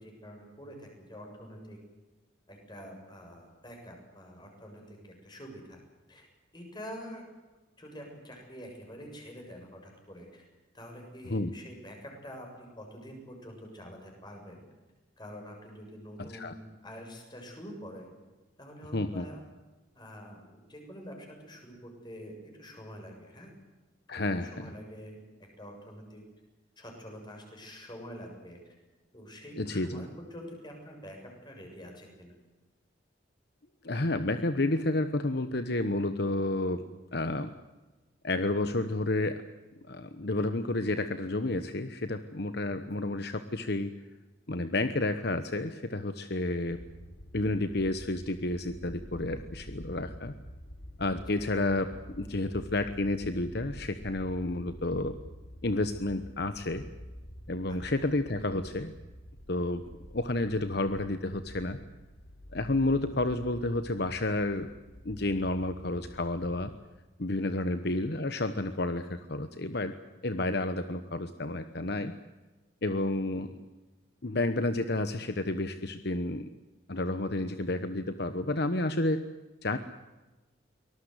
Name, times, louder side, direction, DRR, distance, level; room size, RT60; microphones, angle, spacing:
voice 1, 0.0-1.8 2.5-5.8 6.1-6.3 6.5-7.2 7.8-10.5 10.7-14.6 15.2-18.1 18.6-19.4 19.9-23.5 24.1-26.2 26.8-28.7 29.1-31.2 31.4-32.3 42.6-42.9 57.7-57.8 67.6-67.7 73.3-73.6, equal, 25° left, 2 dB, 7.3 m, -46 dB
voice 2, 16.2-16.5 18.9-19.2 24.1-24.7 29.6-30.1 33.8-36.8 37.1-37.5 38.2-39.4 39.9-43.9 44.5-46.8 47.3-50.3 51.0-55.1 55.6-56.8 57.5-58.9 59.5-59.8 60.1-61.8 62.5-64.7 65.0-66.7 67.2-69.9 70.2-72.1 72.8-73.5 74.2-76.5 76.9-79.2 79.6-79.8, left 2 dB, 60° left, 10 dB, 1.1 m, -30 dB
sound 1, 46.7-66.7, equal, 80° left, 4.2 m, -48 dB
24.5 x 19.5 x 8.1 m, 1.2 s
head